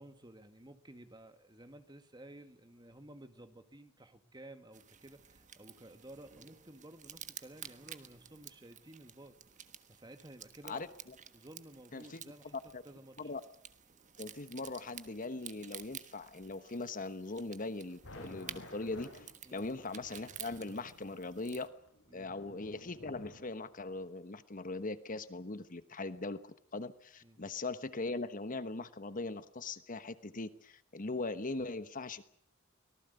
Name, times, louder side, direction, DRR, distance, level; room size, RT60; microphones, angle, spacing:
voice 1, 0.0-9.4 9.9-10.9 11.3-12.6 12.8-13.3 19.4-19.6 22.1-22.3 27.2-27.4, right 1 dB, 20° right, 9 dB, 1.9 m, -54 dB
sound 1, 4.7-21.7, right 9 dB, 40° right, 1.3 m, -52 dB
voice 2, 11.9-12.2 12.7-12.8 13.2-13.4 14.2-21.7 22.1-32.2, left 3 dB, 40° left, 12 dB, 1.2 m, -40 dB
sound 2, 17.6-23.9, left 1 dB, 75° left, 7.4 m, -53 dB
25.0 x 19.0 x 8.2 m, 0.65 s
head